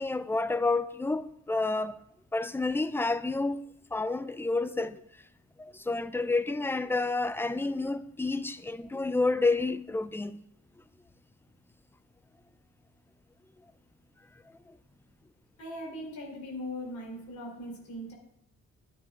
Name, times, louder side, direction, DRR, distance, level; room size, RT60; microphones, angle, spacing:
voice 1, 0.0-2.0 2.3-3.6 3.9-5.0 5.6-10.4, left 3 dB, 10° left, 0.4 m, -29 dB
voice 2, 15.6-18.1, left 1 dB, 70° left, 3.7 m, -39 dB
12.0 x 9.8 x 2.5 m
cardioid pair, 90°, 30 cm